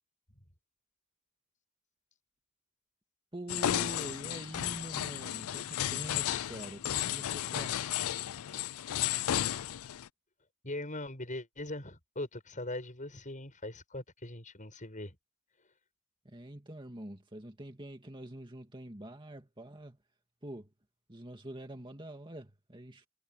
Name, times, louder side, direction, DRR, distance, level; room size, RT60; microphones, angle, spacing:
voice 1, 3.3-7.8 16.2-20.0 20.4-20.7 21.1-23.1, right 1 dB, 20° right, 2.2 m, -45 dB
sound 1, 3.5-10.1, left 11 dB, 75° left, 0.4 m, -33 dB
voice 2, 10.6-15.2, left 1 dB, 35° left, 7.2 m, -40 dB
head